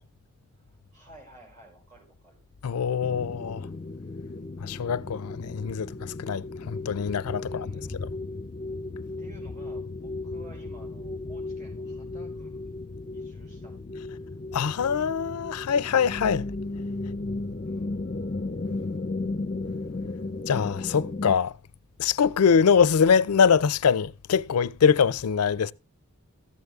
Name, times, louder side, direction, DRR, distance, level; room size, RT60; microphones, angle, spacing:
voice 1, 0.5-2.5 7.4-8.0 9.2-12.9 13.1-13.8 17.7-17.9, right 2 dB, 35° right, 4.6 m, -53 dB
voice 2, 2.6-3.7 4.6-5.9 6.2-7.7 14.5-16.5 20.5-21.5 22.0-25.7, left 6 dB, 90° left, 0.5 m, -23 dB
sound 1, 3.0-21.3, left 2 dB, 35° left, 0.5 m, -35 dB
14.0 x 8.0 x 3.5 m
head